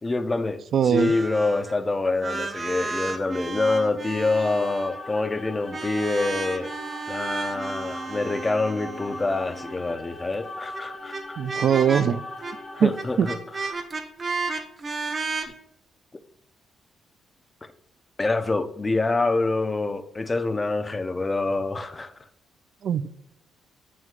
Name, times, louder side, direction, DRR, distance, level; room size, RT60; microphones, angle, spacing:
voice 1, 0.0-6.7 7.1-11.4 12.7-13.4 13.7-13.8 17.6-17.7 18.2-22.1, left 3 dB, 25° left, 10 dB, 0.6 m, -26 dB
voice 2, 0.7-1.1 11.4-12.2 12.8-12.9 13.2-13.3 22.8-23.1, right 8 dB, 60° right, 15 dB, 0.3 m, -21 dB
sound 1, 1.0-1.8 2.1-5.0 5.7-9.9 10.7-10.8 11.1-11.2 11.5-12.0 12.4-12.5 12.9-15.5, right 4 dB, 35° right, 0.8 m, -33 dB
sound 2, 4.2-13.7, left 2 dB, 40° left, 1.0 m, -40 dB
8.9 x 6.2 x 2.4 m, 0.75 s
cardioid pair, 90°, 0 cm